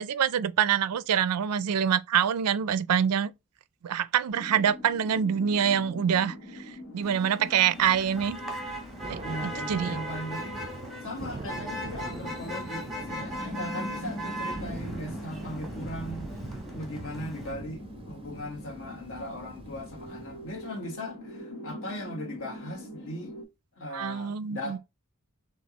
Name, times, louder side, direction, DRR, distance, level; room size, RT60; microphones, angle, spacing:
voice 1, 0.0-3.3 3.8-6.6 6.9-8.4 9.1-10.0 23.9-24.8, right 8 dB, 85° right, 0.4 m, -26 dB
sound 1, 4.3-23.4, left 1 dB, 80° left, 1.5 m, -42 dB
Motor vehicle (road), 7.0-17.5, right 1 dB, ahead, 0.9 m, -39 dB
Thunder / Rain, 7.8-20.7, right 2 dB, 25° right, 0.5 m, -43 dB
voice 2, 9.2-10.6 11.0-16.3 16.7-23.4 23.8-24.8, left 1 dB, 65° left, 1.4 m, -38 dB
6.2 x 2.3 x 2.9 m
head